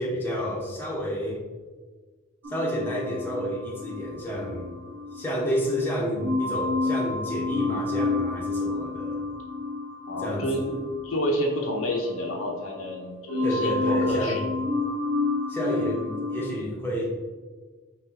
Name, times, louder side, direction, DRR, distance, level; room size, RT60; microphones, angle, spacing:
voice 1, 0.0-1.4 2.5-4.8 5.1-9.2 10.2-10.8 13.4-14.4 15.5-17.0, equal, 10° left, -4 dB, 0.8 m, -30 dB
sound 1, 2.4-5.7 6.2-13.0 13.3-16.5, left 3 dB, 65° right, 1.1 m, -30 dB
voice 2, 10.1-10.6 11.0-14.4, left 1 dB, 65° left, 1 dB, 0.7 m, -29 dB
4.7 x 2.8 x 3.8 m, 1.4 s
head